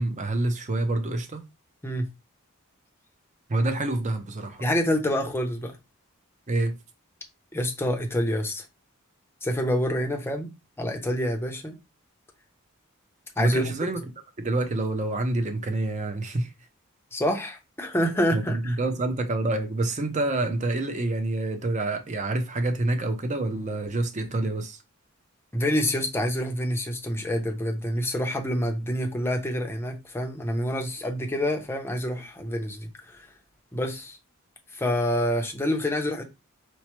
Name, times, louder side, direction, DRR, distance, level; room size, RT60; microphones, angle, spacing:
voice 1, 0.0-1.4 3.5-4.7 6.5-6.8 13.4-14.0 14.4-16.5 18.3-24.8, right 2 dB, 35° right, 0.6 m, -27 dB
voice 2, 4.6-5.8 7.5-8.6 9.4-10.5 10.8-11.8 13.4-13.7 17.1-18.7 25.5-33.3 33.7-34.2 34.7-36.2, equal, 10° left, 0.6 m, -27 dB
4.4 x 2.0 x 3.0 m
head